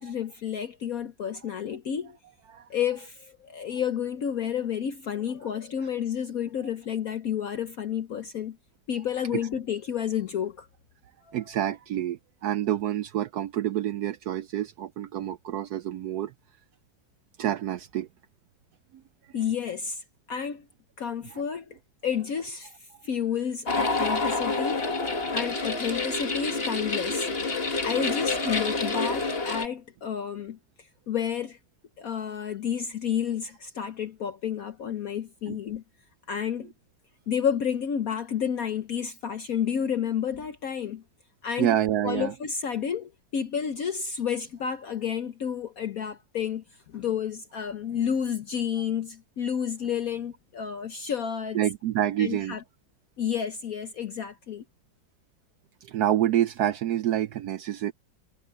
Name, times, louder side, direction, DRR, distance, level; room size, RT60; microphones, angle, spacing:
voice 1, 0.0-2.1 2.7-8.6 8.9-10.7 11.3-11.4 19.3-20.0 20.3-20.7 21.0-21.6 22.0-22.7 23.0-24.9 25.3-27.3 27.8-30.6 31.1-31.6 32.0-35.8 36.3-36.7 37.3-41.0 41.4-41.7 42.0-46.6 46.9-51.6 52.2-52.6 53.2-54.6, left 8 dB, 55° left, 1.2 m, -30 dB
voice 2, 11.3-16.3 17.4-18.1 18.9-19.0 25.0-25.1 35.5-35.6 41.6-42.3 51.5-52.6 55.8-57.9, right 12 dB, 70° right, 0.9 m, -27 dB
sound 1, 23.7-29.7, left 3 dB, 30° left, 2.0 m, -28 dB
omnidirectional pair, 2.0 m